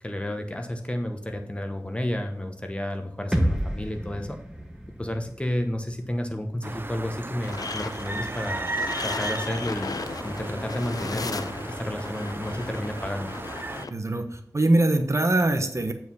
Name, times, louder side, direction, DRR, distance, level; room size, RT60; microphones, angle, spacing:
voice 1, 0.0-4.4 5.0-8.7 9.0-13.3, left 1 dB, 20° left, 5 dB, 1.1 m, -31 dB
sound 1, 3.3-7.2, equal, 10° right, 1.2 m, -31 dB
sound 2, 6.6-13.9, right 2 dB, 35° right, 0.5 m, -35 dB
sound 3, 7.4-13.9, left 4 dB, 85° left, 0.5 m, -36 dB
voice 2, 13.9-15.9, right 2 dB, 50° right, 6 dB, 0.9 m, -23 dB
8.2 x 4.7 x 5.4 m, 0.70 s
wide cardioid pair, 50°, 6 cm